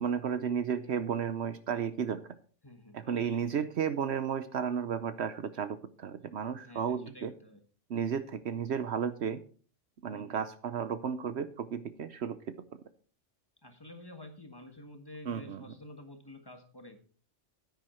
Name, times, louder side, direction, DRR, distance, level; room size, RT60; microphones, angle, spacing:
voice 1, 0.0-2.2 2.9-7.3 7.9-9.4 10.0-12.4 15.3-15.6, right 7 dB, 65° right, 12 dB, 1.0 m, -33 dB
voice 2, 2.6-3.6 6.5-7.6 10.1-10.4 13.6-17.0, left 1 dB, 20° left, 5 dB, 1.4 m, -50 dB
9.9 x 9.5 x 4.3 m, 0.42 s
omnidirectional pair, 1.3 m